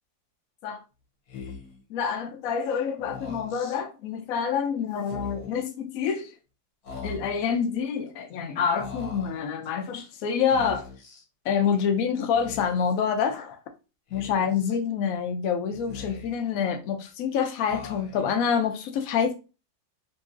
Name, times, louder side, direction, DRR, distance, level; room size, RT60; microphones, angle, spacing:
Speech, 1.3-1.8 3.0-3.8 5.0-5.6 6.8-7.5 8.8-9.4 10.5-11.2 12.3-12.9 14.1-14.8 15.7-16.5 17.7-18.4, left 4 dB, 60° left, 1.2 m, -41 dB
voice 1, 1.9-6.3 7.0-10.9 11.4-13.6 14.1-19.3, left 7 dB, 80° left, 0.7 m, -27 dB
2.9 x 2.7 x 2.4 m
omnidirectional pair, 2.0 m